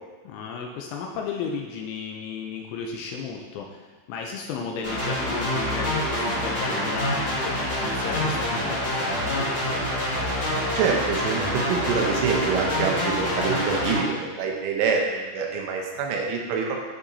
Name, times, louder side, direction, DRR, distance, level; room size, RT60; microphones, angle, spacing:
voice 1, 0.2-10.3, left 5 dB, 80° left, 1 dB, 2.8 m, -34 dB
sound 1, 4.8-14.0, left 1 dB, 50° left, 0.7 m, -26 dB
voice 2, 10.7-16.8, right 5 dB, 80° right, 0 dB, 3.3 m, -26 dB
11.5 x 5.1 x 2.7 m, 1.3 s
omnidirectional pair, 5.7 m